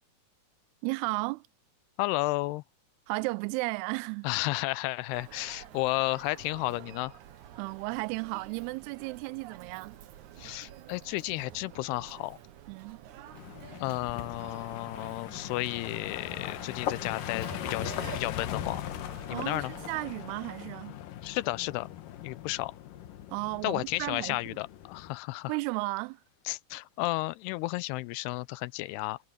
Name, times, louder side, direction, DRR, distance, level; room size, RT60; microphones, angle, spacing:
voice 1, 0.8-1.4 3.1-4.3 7.6-10.0 12.7-13.0 19.3-21.0 23.3-24.6 25.5-26.2, right 24 dB, 85° right, 2.6 m, -34 dB
voice 2, 2.0-2.6 4.2-7.1 10.4-12.4 13.8-18.8 19.3-19.7 21.2-21.9 22.2-22.7 23.6-25.5 26.5-29.2, left 20 dB, 85° left, 2.7 m, -32 dB
Human voice, 5.1-20.0, right 11 dB, 70° right, 2.0 m, -49 dB
sound 1, 13.3-25.2, left 11 dB, 65° left, 2.5 m, -39 dB
omnidirectional pair, 4.6 m